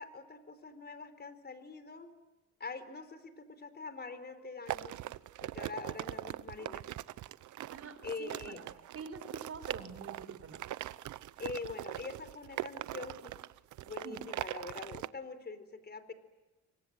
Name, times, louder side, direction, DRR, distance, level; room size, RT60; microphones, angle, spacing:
voice 1, 0.0-2.1 2.6-5.0 5.4-6.9 8.0-8.6 11.4-13.3 13.8-16.1, left 4 dB, 35° left, 11 dB, 4.3 m, -44 dB
sound 1, 4.7-15.1, right 14 dB, 75° right, 0.9 m, -41 dB
voice 2, 7.7-8.6 8.9-10.7 14.0-14.2, right 5 dB, 50° right, 10 dB, 4.9 m, -46 dB
29.5 x 24.0 x 7.9 m, 1.1 s
cardioid pair, 90°, 30 cm